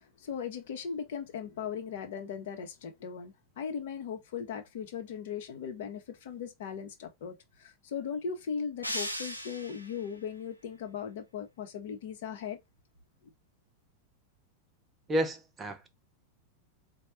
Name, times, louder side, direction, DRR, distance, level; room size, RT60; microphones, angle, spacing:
voice 1, 0.0-12.6, left 7 dB, 55° left, 1.0 m, -38 dB
sound 1, 8.8-10.1, equal, 90° left, 0.7 m, -37 dB
voice 2, 15.1-15.9, equal, 20° right, 0.8 m, -31 dB
4.3 x 2.3 x 4.3 m
figure-of-eight pair, 90°, 0 cm